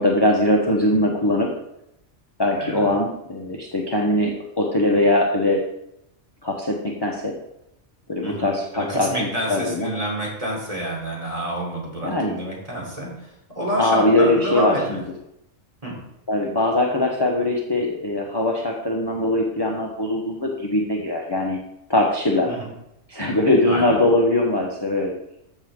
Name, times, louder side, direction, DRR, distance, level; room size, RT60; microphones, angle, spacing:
voice 1, 0.0-1.5 2.4-5.6 6.4-7.3 8.1-9.9 12.0-12.4 13.8-15.0 16.3-21.6 21.9-22.5 23.1-25.1, left 1 dB, 20° left, -1 dB, 1.1 m, -21 dB
voice 2, 2.6-2.9 8.2-15.0 15.8-16.0 22.5-22.7 23.7-24.0, right 1 dB, 25° right, -3 dB, 3.8 m, -28 dB
14.0 x 6.6 x 3.8 m, 0.81 s
omnidirectional pair, 1.3 m